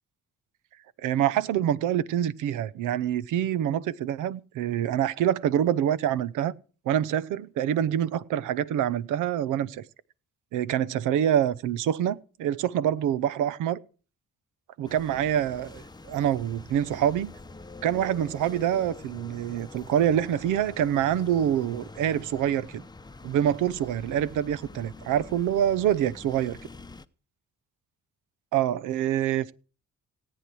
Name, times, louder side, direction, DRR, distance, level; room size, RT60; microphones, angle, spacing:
voice 1, 1.0-6.5 6.9-9.8 10.5-13.8 14.8-17.3 17.8-22.8 23.2-26.6 28.5-29.5, right 10 dB, 85° right, 0.8 m, -26 dB
sound 1, 14.8-27.1, left 3 dB, 15° left, 0.8 m, -45 dB
17.5 x 8.8 x 6.2 m
cardioid pair, 90°, 30 cm